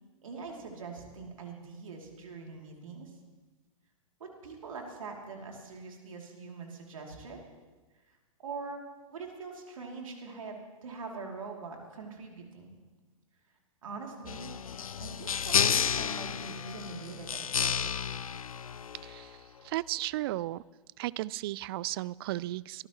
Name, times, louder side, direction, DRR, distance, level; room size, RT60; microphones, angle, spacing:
voice 1, 0.2-3.1 4.2-7.4 8.4-8.8 9.1-12.8 13.8-14.5 15.0-18.1, right 4 dB, 70° right, 1 dB, 2.9 m, -43 dB
sound 1, 14.3-19.3, left 7 dB, 80° left, 0.5 m, -31 dB
voice 2, 19.0-20.6 21.0-22.9, right 16 dB, 45° right, 23 dB, 0.4 m, -35 dB
26.0 x 14.0 x 3.1 m, 1.3 s
figure-of-eight pair, 110°, 18 cm